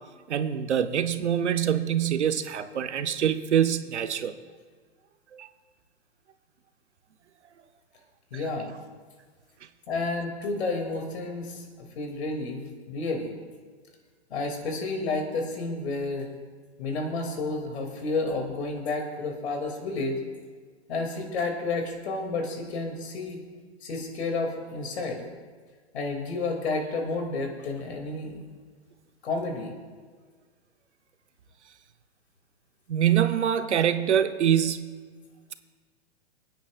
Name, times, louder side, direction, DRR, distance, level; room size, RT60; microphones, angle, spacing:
voice 1, 0.3-4.3 5.3-5.5 32.9-34.9, right 9 dB, 90° right, 10 dB, 0.8 m, -25 dB
voice 2, 8.3-8.7 9.9-11.6 12.0-13.3 14.3-16.3 16.8-20.2 20.9-23.4 23.8-25.2 25.9-28.3 29.2-29.7, left 3 dB, 70° left, 3 dB, 2.5 m, -30 dB
24.5 x 9.2 x 2.4 m, 1.5 s
hypercardioid pair, 125°, 33 cm